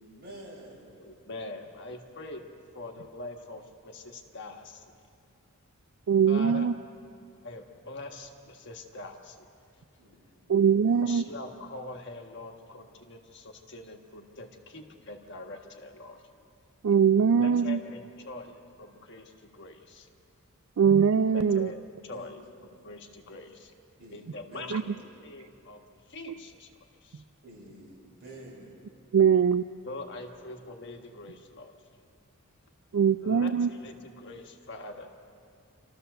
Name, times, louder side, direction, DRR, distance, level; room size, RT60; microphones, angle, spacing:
voice 1, 0.0-1.0 10.0-10.5 10.8-11.2 22.0-22.4 24.0-24.9 27.4-28.7, right 1 dB, 45° right, -5 dB, 7.1 m, -49 dB
voice 2, 1.0-2.5 2.7-4.8 6.3-6.7 7.4-9.5 11.0-16.2 17.3-20.1 21.3-22.4 22.7-23.7 24.1-24.8 25.2-25.8 26.1-27.2 29.8-31.7 33.2-35.1, left 2 dB, 55° left, 3 dB, 1.4 m, -43 dB
voice 3, 6.1-6.7 10.5-11.2 16.8-17.8 20.8-21.7 24.7-24.8 29.1-29.6 32.9-33.7, right 7 dB, 65° right, 12 dB, 0.4 m, -22 dB
28.0 x 13.5 x 6.8 m, 2.5 s
head